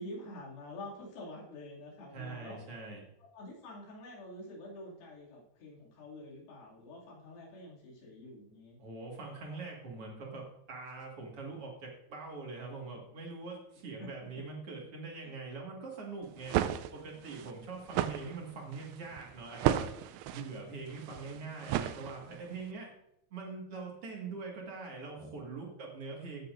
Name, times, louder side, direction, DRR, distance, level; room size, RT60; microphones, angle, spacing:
voice 1, 0.0-2.6 3.2-8.8 14.0-14.5 15.2-15.3, left 1 dB, 60° left, -4 dB, 4.0 m, -47 dB
voice 2, 2.1-3.0 8.8-22.9 23.3-26.4, right 4 dB, 50° right, -1 dB, 1.8 m, -43 dB
sound 1, 16.2-22.5, right 12 dB, 85° right, 2.9 m, -34 dB
15.5 x 8.2 x 2.6 m, 0.80 s
omnidirectional pair, 5.2 m